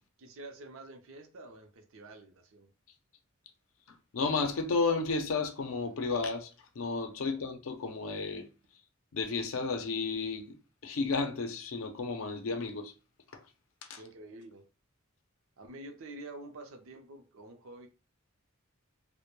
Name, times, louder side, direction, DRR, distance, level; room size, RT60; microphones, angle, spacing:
voice 1, 0.2-2.7 7.2-7.4 14.0-14.7 15.6-17.9, right 2 dB, 75° right, 0.5 m, -48 dB
voice 2, 4.1-6.5 6.8-8.5 9.1-10.6 10.8-12.9 13.3-13.4 13.9-14.0, left 4 dB, 85° left, 0.5 m, -32 dB
2.2 x 2.1 x 2.9 m
head